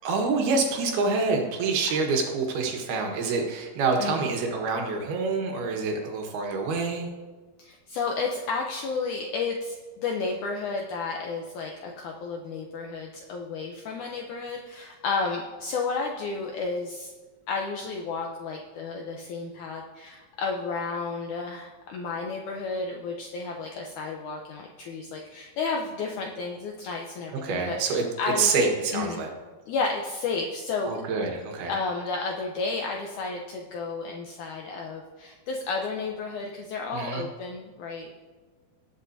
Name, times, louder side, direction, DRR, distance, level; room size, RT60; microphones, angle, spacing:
voice 1, 0.0-7.1 27.3-28.1 28.4-29.3 30.9-31.7 36.9-37.3, right 4 dB, 75° right, 2 dB, 3.3 m, -26 dB
voice 2, 7.6-17.1 17.5-28.5 28.9-29.2 29.7-31.0 31.7-38.1, left 4 dB, 85° left, 1 dB, 1.7 m, -32 dB
19.5 x 8.0 x 2.7 m, 1.4 s
omnidirectional pair, 4.6 m